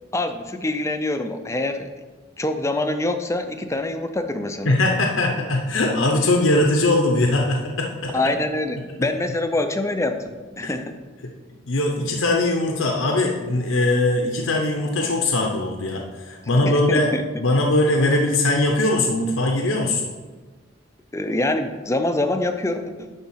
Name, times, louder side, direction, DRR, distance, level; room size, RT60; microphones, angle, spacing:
voice 1, 0.1-1.9 2.4-4.7 8.1-10.2 10.6-10.9 16.6-17.2 21.1-23.2, left 2 dB, 15° left, 7 dB, 0.5 m, -25 dB
voice 2, 4.6-8.1 10.6-10.7 11.2-11.3 11.6-17.1 17.4-20.0, left 2 dB, 75° left, 1 dB, 0.8 m, -21 dB
10.5 x 3.5 x 5.7 m, 1.3 s
head